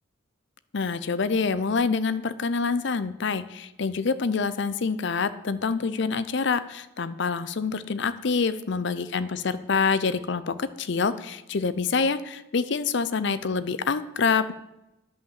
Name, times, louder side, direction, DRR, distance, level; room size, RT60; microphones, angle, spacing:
voice 1, 0.7-14.5, left 5 dB, 55° left, 14 dB, 0.5 m, -26 dB
10.0 x 5.7 x 7.4 m, 0.95 s
head